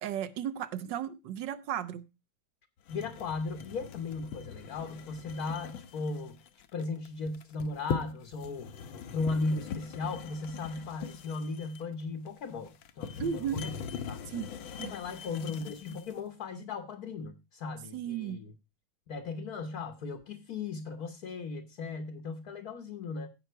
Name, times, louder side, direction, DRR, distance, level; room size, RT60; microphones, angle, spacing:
voice 1, 0.0-2.1 13.2-13.7 14.3-14.5 14.8-14.9 17.9-18.4, right 9 dB, 65° right, 1.4 m, -35 dB
sound 1, 2.9-16.2, left 7 dB, 75° left, 1.6 m, -41 dB
voice 2, 2.9-6.4 6.7-13.7 14.1-14.2 14.8-18.5 19.1-23.3, left 3 dB, 55° left, 1.3 m, -37 dB
16.0 x 5.8 x 4.4 m
omnidirectional pair, 2.3 m